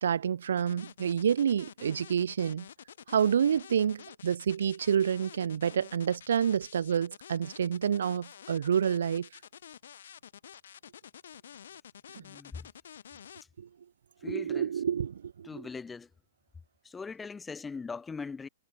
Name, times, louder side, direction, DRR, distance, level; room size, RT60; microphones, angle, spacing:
voice 1, 0.0-2.7 3.1-9.3 12.2-12.3 13.6-13.7 14.2-15.6, right 8 dB, 75° right, 0.5 m, -28 dB
sound 1, 0.6-13.4, left 9 dB, 70° left, 2.8 m, -50 dB
voice 2, 12.2-12.7 14.2-14.7 15.4-16.1 16.8-18.5, left 5 dB, 10° left, 0.6 m, -40 dB
hypercardioid pair, 160°, 0 cm